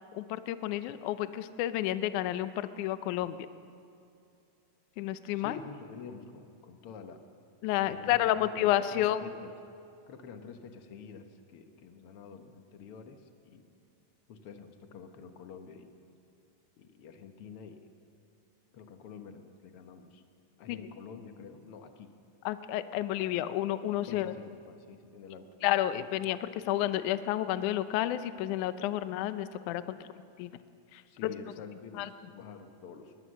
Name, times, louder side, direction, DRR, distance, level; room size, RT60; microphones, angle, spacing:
voice 1, 0.1-3.4 5.0-5.6 7.6-9.3 20.7-20.8 22.5-24.3 25.6-30.1 30.4-30.5 30.9-31.3 32.0-32.1, left 13 dB, 75° left, 12 dB, 2.0 m, -30 dB
voice 2, 5.4-7.2 7.8-9.5 10.1-13.6 14.3-15.9 16.8-17.9 18.7-20.2 20.6-22.1 23.2-23.3 24.1-25.5 31.0-33.1, left 6 dB, 55° left, 6 dB, 1.6 m, -48 dB
21.0 x 20.0 x 6.5 m, 2.5 s
omnidirectional pair, 3.9 m